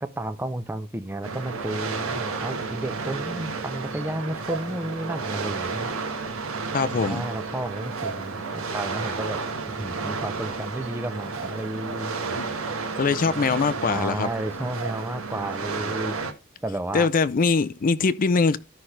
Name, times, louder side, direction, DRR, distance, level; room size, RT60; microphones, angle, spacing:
voice 1, 0.0-6.0 7.0-9.4 9.7-12.2 13.9-16.2 16.6-17.1, right 1 dB, 10° right, 0.5 m, -32 dB
sound 1, 1.2-16.3, right 4 dB, 80° right, 1.4 m, -32 dB
voice 2, 6.7-7.2 12.4-12.5 13.0-14.3 16.9-18.6, left 4 dB, 40° left, 0.4 m, -22 dB
13.5 x 5.7 x 3.2 m
head